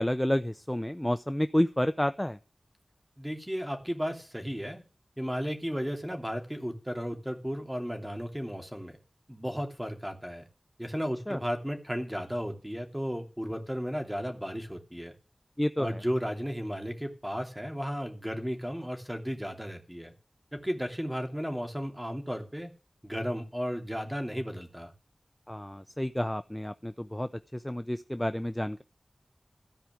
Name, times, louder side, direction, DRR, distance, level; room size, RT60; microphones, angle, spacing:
voice 1, 0.0-2.4 11.3-11.4 15.6-15.9 25.5-28.8, left 1 dB, 10° left, 11 dB, 0.6 m, -30 dB
voice 2, 3.2-4.8 5.2-9.0 9.3-10.4 10.8-15.1 15.8-20.1 20.5-22.7 23.0-24.9, equal, 10° right, 3 dB, 2.9 m, -34 dB
14.5 x 4.9 x 9.2 m, 0.34 s
wide cardioid pair, 55°, 0 cm